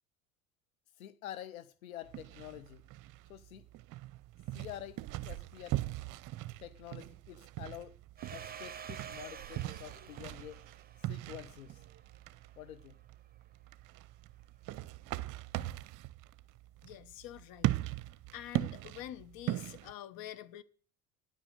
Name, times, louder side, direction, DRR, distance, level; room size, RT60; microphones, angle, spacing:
voice 1, 1.0-2.8 3.3-3.6 4.5-5.8 6.6-7.9 8.3-10.6 11.0-11.8 12.6-12.9, left 12 dB, 90° left, 0.7 m, -48 dB
sound 1, 2.1-19.9, right 16 dB, 50° right, 0.7 m, -40 dB
Domestic sounds home sounds, 8.2-12.6, right 8 dB, 20° right, 1.2 m, -49 dB
voice 2, 16.8-17.7 18.3-20.6, left 13 dB, 60° left, 1.2 m, -46 dB
10.0 x 9.1 x 6.5 m
hypercardioid pair, 70°, 40 cm